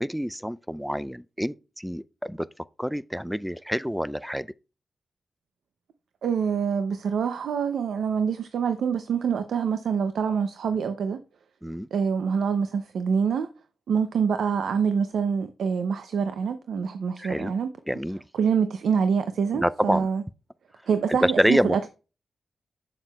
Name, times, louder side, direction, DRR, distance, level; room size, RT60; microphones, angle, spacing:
voice 1, 0.0-2.5 2.8-4.5 11.6-11.9 17.2-17.5 17.9-18.2 19.5-20.1 21.1-21.9, equal, ahead, 0.3 m, -27 dB
voice 2, 6.2-11.2 11.9-13.5 13.9-17.7 18.4-20.2 20.9-21.9, right 6 dB, 85° right, 0.5 m, -25 dB
7.8 x 7.3 x 2.3 m
cardioid pair, 60°, 0 cm